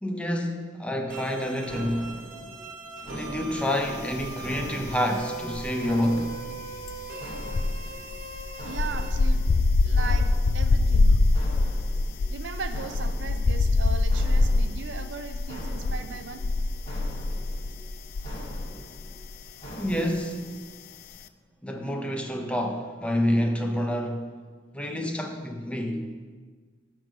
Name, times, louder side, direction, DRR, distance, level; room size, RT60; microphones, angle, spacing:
voice 1, 0.0-2.2 3.0-6.3 19.8-20.6 21.6-24.2 24.7-26.1, equal, 5° left, 3 dB, 0.7 m, -28 dB
sound 1, 1.1-20.9, equal, 25° left, 2.1 m, -44 dB
sound 2, 1.1-9.1, right 4 dB, 50° right, 1.0 m, -41 dB
sound 3, 4.1-4.9 5.2-18.7 19.0-19.3, left 3 dB, 55° left, 0.4 m, -24 dB
voice 2, 8.6-9.4 9.8-10.3 10.5-11.2 12.3-16.4, right 4 dB, 80° right, 8 dB, 0.6 m, -37 dB
10.0 x 3.8 x 6.3 m, 1.5 s
head